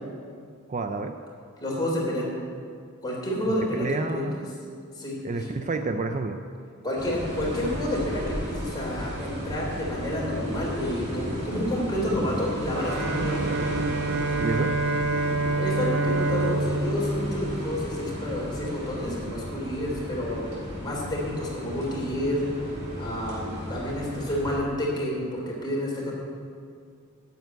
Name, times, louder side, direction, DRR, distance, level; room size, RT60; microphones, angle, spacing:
voice 1, 0.7-1.2 3.7-4.4 5.2-6.4 14.4-14.7, right 3 dB, 35° right, 6 dB, 0.5 m, -29 dB
voice 2, 1.6-2.3 3.0-4.3 5.0-5.5 6.8-13.5 15.2-15.3 15.6-22.4 22.9-26.1, equal, 20° left, -4 dB, 3.5 m, -30 dB
sound 1, 7.0-24.6, equal, 85° right, 3.9 m, -34 dB
Bowed string instrument, 12.7-18.2, right 2 dB, 60° right, 0.8 m, -27 dB
9.3 x 8.3 x 9.2 m, 2.2 s
head